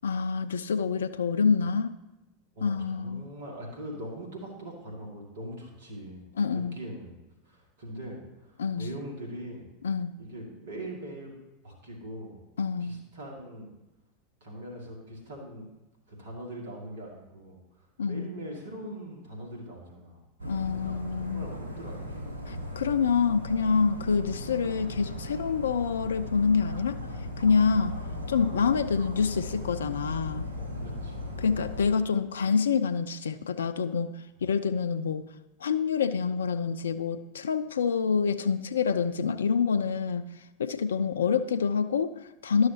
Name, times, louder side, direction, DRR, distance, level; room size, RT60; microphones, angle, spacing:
voice 1, 0.0-1.9 2.6-3.3 6.4-6.8 8.6-8.9 9.8-10.2 12.6-13.0 18.0-18.3 20.4-21.5 22.5-27.0 27.4-28.0 28.3-30.5 31.4-34.2 34.4-35.2 35.6-40.3 40.6-42.7, left 6 dB, 80° left, 11 dB, 0.3 m, -27 dB
voice 2, 2.6-6.2 6.5-7.2 7.5-9.6 10.2-11.3 11.6-12.4 12.8-13.7 14.4-15.7 16.1-17.6 18.0-20.2 20.5-20.8 21.3-22.7 30.6-31.3, right 1 dB, 70° right, -1 dB, 2.2 m, -41 dB
Dog, 20.4-31.9, left 1 dB, 90° right, 1.2 m, -37 dB
11.5 x 6.3 x 2.8 m, 1.0 s
hypercardioid pair, 85°, 0 cm